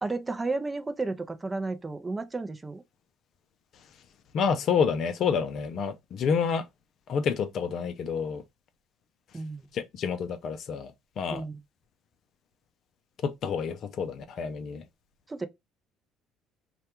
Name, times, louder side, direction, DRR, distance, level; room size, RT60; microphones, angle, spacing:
voice 1, 0.0-2.8 9.3-9.7 11.3-11.6 15.3-15.5, right 3 dB, 20° right, 0.5 m, -32 dB
voice 2, 4.3-6.7 7.1-8.4 9.7-11.4 13.2-14.8, left 6 dB, 55° left, 0.4 m, -28 dB
2.3 x 2.1 x 2.8 m
hypercardioid pair, 65°, 0 cm